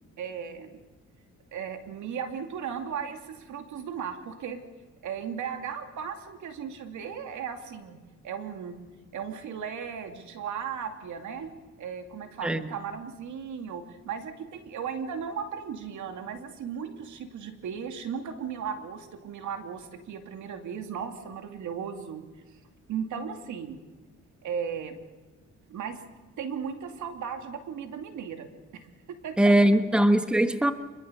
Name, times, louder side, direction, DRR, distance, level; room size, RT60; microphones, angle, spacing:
voice 1, 0.2-0.8 1.5-4.6 5.0-8.8 9.1-11.5 11.8-22.2 22.5-22.6 22.9-23.8 24.4-25.0 25.7-26.0 26.4-28.5 28.7-29.6, right 7 dB, 75° right, 6 dB, 2.6 m, -36 dB
voice 2, 29.4-30.7, right 1 dB, 5° right, 9 dB, 1.2 m, -21 dB
25.0 x 22.0 x 6.9 m, 1.2 s
cardioid pair, 90°, 30 cm